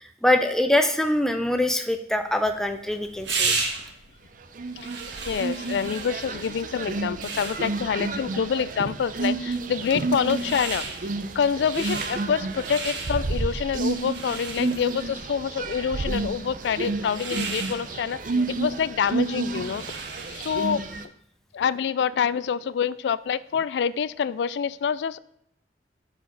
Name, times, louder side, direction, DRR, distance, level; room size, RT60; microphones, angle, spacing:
voice 1, 0.0-3.5, left 1 dB, 5° left, 6 dB, 0.6 m, -23 dB
sound 1, 2.2-20.7, right 4 dB, 80° right, 1.4 m, -36 dB
sound 2, 4.5-21.0, right 3 dB, 50° right, 0.6 m, -31 dB
voice 2, 5.3-10.9 11.3-19.8 20.3-20.8 21.5-25.2, left 7 dB, 70° left, 17 dB, 0.3 m, -26 dB
11.5 x 4.9 x 3.9 m, 0.74 s
head